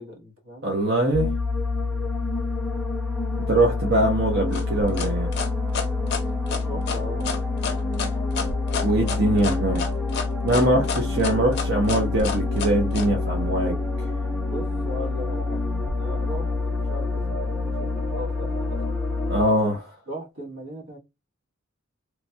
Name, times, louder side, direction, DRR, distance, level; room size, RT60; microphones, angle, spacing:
voice 1, 0.0-0.7 1.8-2.1 6.6-7.3 14.5-15.6 16.0-18.8 20.1-21.0, equal, 75° right, 1.3 m, -38 dB
voice 2, 0.6-1.3 3.5-5.3 8.8-9.8 10.4-14.2 19.3-19.9, right 1 dB, 50° right, 0.7 m, -22 dB
sound 1, 1.1-19.4, left 3 dB, ahead, 0.6 m, -27 dB
sound 2, 4.5-13.1, left 5 dB, 50° left, 0.6 m, -30 dB
3.1 x 2.2 x 2.6 m
head